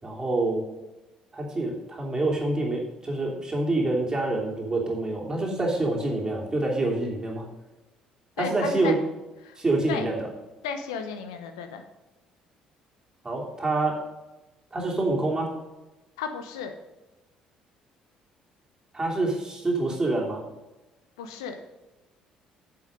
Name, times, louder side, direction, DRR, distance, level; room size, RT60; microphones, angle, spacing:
voice 1, 0.0-0.6 1.3-7.4 8.4-9.0 9.6-10.2 13.2-14.0 14.7-15.5 18.9-20.4, right 2 dB, 25° right, -1 dB, 3.0 m, -26 dB
voice 2, 8.4-8.9 9.4-9.6 9.9-10.1 10.6-11.8 16.2-16.7 21.2-21.6, left 6 dB, 75° left, 7 dB, 0.9 m, -34 dB
8.6 x 6.9 x 5.3 m, 1.1 s
figure-of-eight pair, 50°, 3 cm